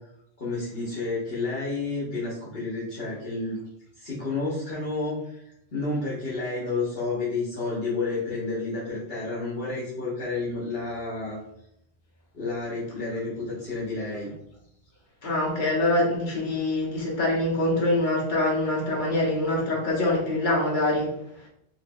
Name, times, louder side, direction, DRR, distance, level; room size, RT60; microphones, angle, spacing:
voice 1, 0.4-3.6 4.0-5.4 5.7-11.4 12.3-14.3, left 3 dB, 70° left, -7 dB, 1.3 m, -30 dB
voice 2, 15.2-21.1, left 1 dB, 50° left, -4 dB, 1.3 m, -24 dB
4.5 x 3.0 x 2.3 m, 0.78 s
omnidirectional pair, 1.1 m